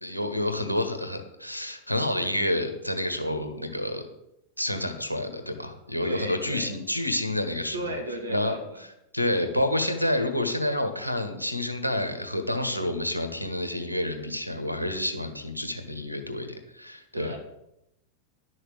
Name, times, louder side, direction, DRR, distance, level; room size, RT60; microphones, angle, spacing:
voice 1, 0.0-4.0 4.6-7.8 8.3-8.5 9.1-17.3, left 1 dB, 90° left, 9 dB, 1.5 m, -29 dB
voice 2, 6.0-6.7 7.7-8.8 17.1-17.4, right 1 dB, 75° right, 3 dB, 2.1 m, -35 dB
11.5 x 6.5 x 7.7 m, 0.83 s
figure-of-eight pair, 90°, 0 cm